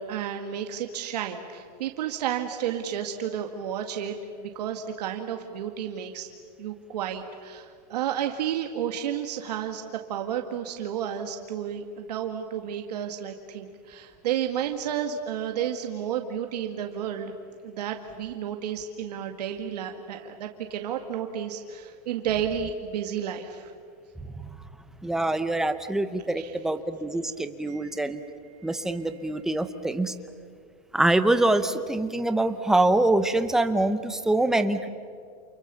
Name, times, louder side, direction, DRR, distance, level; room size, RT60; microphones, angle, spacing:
voice 1, 0.0-6.3 6.6-9.8 10.1-17.3 17.6-23.7 26.4-26.5 27.7-29.1, right 9 dB, 75° right, 4 dB, 2.0 m, -32 dB
voice 2, 25.0-28.2 28.6-30.1 30.9-34.9, right 2 dB, ahead, 9 dB, 0.7 m, -24 dB
29.5 x 29.0 x 6.9 m, 2.2 s
supercardioid pair, 180°, 21 cm